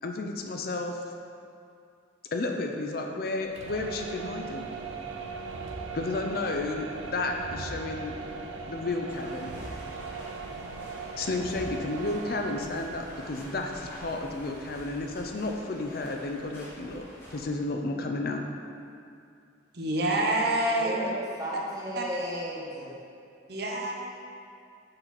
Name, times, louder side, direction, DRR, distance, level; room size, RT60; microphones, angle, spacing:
voice 1, 0.0-1.0 2.3-4.7 5.9-8.2 8.7-9.5 11.2-17.0 17.3-18.4, left 2 dB, 50° left, 3 dB, 0.5 m, -32 dB
sound 1, 3.4-15.3, right 4 dB, 85° right, 0.6 m, -39 dB
sound 2, 9.1-17.4, equal, 10° left, 1.4 m, -48 dB
voice 2, 19.7-21.1 22.0-22.1 23.5-23.9, right 1 dB, 55° right, -1 dB, 0.8 m, -27 dB
voice 3, 20.7-23.0, equal, 20° right, -7 dB, 1.4 m, -35 dB
6.6 x 4.2 x 5.8 m, 2.4 s
head